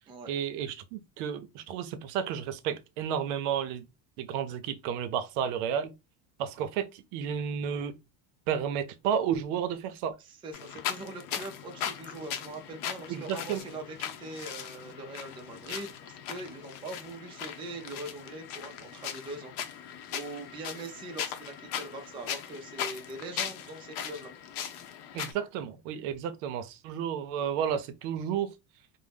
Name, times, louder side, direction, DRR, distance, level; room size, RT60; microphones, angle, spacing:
voice 1, 0.3-3.8 4.2-5.9 6.4-7.9 8.5-10.2 13.1-13.6 25.1-28.5, right 8 dB, 75° right, 0.6 m, -32 dB
voice 2, 10.2-24.3, right 2 dB, 10° right, 0.3 m, -42 dB
sound 1, 10.5-25.3, left 9 dB, 70° left, 0.7 m, -39 dB
2.6 x 2.0 x 3.3 m
supercardioid pair, 130°, 46 cm